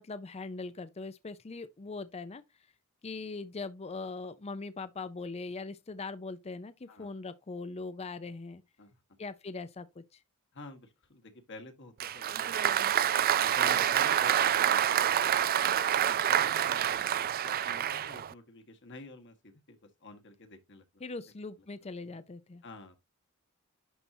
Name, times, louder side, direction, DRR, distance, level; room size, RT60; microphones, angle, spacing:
voice 1, 0.0-2.4 3.0-8.6 9.2-10.0 21.0-22.6, left 3 dB, 30° left, 0.5 m, -41 dB
voice 2, 10.5-12.6 12.9-13.1 13.4-17.0 17.4-20.8 22.6-23.0, left 3 dB, 55° left, 1.6 m, -50 dB
Applause, 12.0-18.3, right 10 dB, 45° right, 0.4 m, -27 dB
11.0 x 4.3 x 2.7 m
head